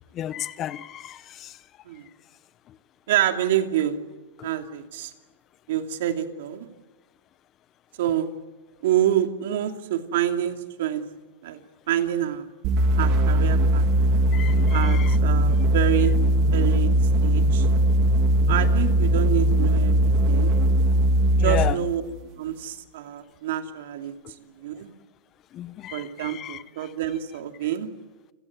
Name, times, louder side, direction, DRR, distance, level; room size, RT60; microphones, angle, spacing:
voice 1, 0.2-1.5 14.3-15.1 21.4-21.8 25.5-26.6, left 11 dB, 25° left, 0.8 m, -33 dB
voice 2, 3.1-4.0 4.4-5.1 5.7-6.7 8.0-8.3 8.8-11.0 11.4-11.6 11.9-12.5 13.0-13.9 14.7-16.1 16.5-16.9 17.2-17.7 18.5-20.0 20.3-20.5 21.4-22.0 22.4-24.1 24.4-24.9 25.9-27.9, right 11 dB, 65° right, 2.7 m, -27 dB
sound 1, 12.6-21.8, right 1 dB, 35° right, 2.8 m, -20 dB
29.0 x 17.0 x 9.5 m
supercardioid pair, 160°, 0 cm